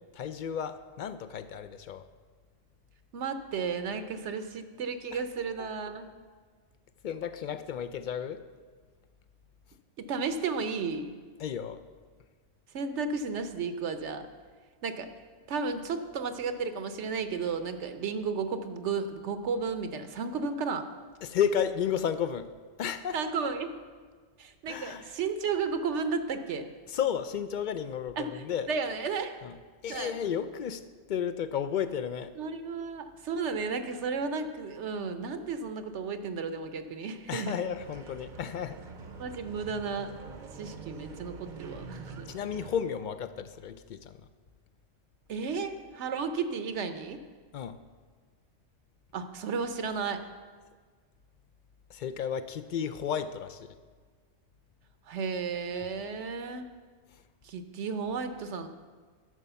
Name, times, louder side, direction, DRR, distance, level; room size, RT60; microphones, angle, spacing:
voice 1, 0.1-2.1 5.1-5.2 5.6-5.7 7.0-8.4 11.4-11.8 21.2-22.5 22.8-23.3 24.7-25.1 26.9-28.7 29.4-29.5 29.8-32.3 37.3-38.8 42.3-44.2 47.5-47.8 51.9-53.8, left 8 dB, 60° left, 11 dB, 0.5 m, -33 dB
voice 2, 3.1-6.1 10.0-11.1 12.7-14.3 14.8-15.1 15.5-20.8 23.1-23.7 24.4-26.7 28.2-28.4 28.7-29.4 29.9-30.1 32.4-37.6 39.2-40.1 40.6-42.3 45.3-47.2 49.1-50.2 55.1-56.7 57.4-58.7, right 5 dB, 75° right, 9 dB, 1.0 m, -33 dB
sound 1, 37.7-42.8, right 4 dB, 45° right, 0.8 m, -46 dB
11.0 x 6.3 x 6.8 m, 1.5 s
omnidirectional pair, 1.2 m